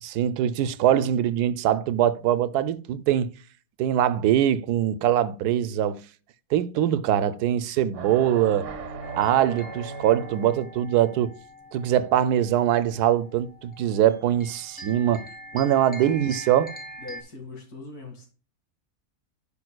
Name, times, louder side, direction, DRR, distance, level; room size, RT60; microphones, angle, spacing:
voice 1, 0.0-3.3 3.8-6.0 6.5-8.7 9.1-11.3 11.7-15.2 15.5-16.7, right 11 dB, 85° right, 1.1 m, -23 dB
sound 1, 7.9-10.8, right 5 dB, 55° right, 1.1 m, -37 dB
sound 2, 9.0-17.2, equal, 5° left, 0.8 m, -44 dB
voice 2, 15.5-15.8 17.0-18.3, left 3 dB, 75° left, 2.8 m, -41 dB
10.5 x 5.4 x 2.2 m
omnidirectional pair, 1.6 m